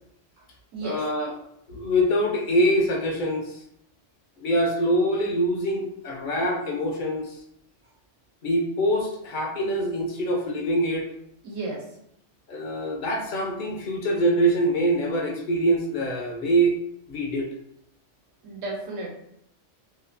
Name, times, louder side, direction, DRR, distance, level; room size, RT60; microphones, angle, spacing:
voice 1, 0.8-1.3 1.7-3.6 4.4-7.4 8.4-11.1 12.5-16.8 17.1-17.5, right 1 dB, 55° left, 1 dB, 0.5 m, -24 dB
voice 2, 11.4-11.9 18.4-19.1, right 2 dB, 85° right, -1 dB, 1.2 m, -33 dB
2.9 x 2.3 x 2.5 m, 0.74 s
omnidirectional pair, 1.3 m